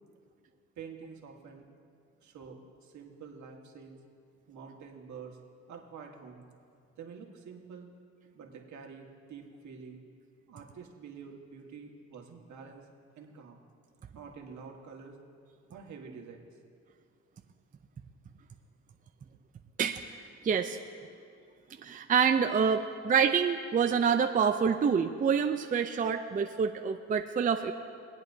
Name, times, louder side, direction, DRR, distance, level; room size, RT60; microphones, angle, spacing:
voice 1, 0.8-1.7 2.2-4.0 4.5-5.4 5.7-6.4 7.0-7.9 8.3-10.0 10.5-12.9 13.2-13.6 14.1-15.2 15.7-16.5, right 5 dB, 70° right, 1 dB, 1.6 m, -47 dB
voice 2, 20.4-20.8 21.8-27.7, right 6 dB, 30° right, 6 dB, 0.5 m, -27 dB
23.0 x 8.8 x 2.7 m, 2.3 s
cardioid pair, 90°, 30 cm